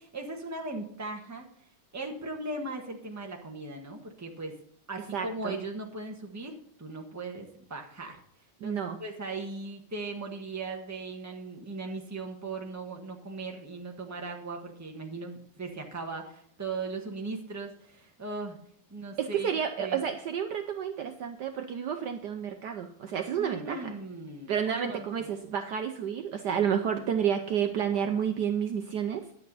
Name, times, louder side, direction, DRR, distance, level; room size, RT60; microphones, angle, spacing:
voice 1, 0.0-1.5 1.9-4.5 4.9-8.2 8.6-18.6 18.9-19.5 19.8-20.0 23.4-25.3, right 3 dB, 10° right, 2 dB, 1.2 m, -38 dB
voice 2, 5.1-5.6 8.6-9.0 19.2-23.9 24.5-29.2, right 8 dB, 65° right, 6 dB, 1.2 m, -30 dB
10.5 x 8.5 x 4.1 m, 0.67 s
omnidirectional pair, 2.2 m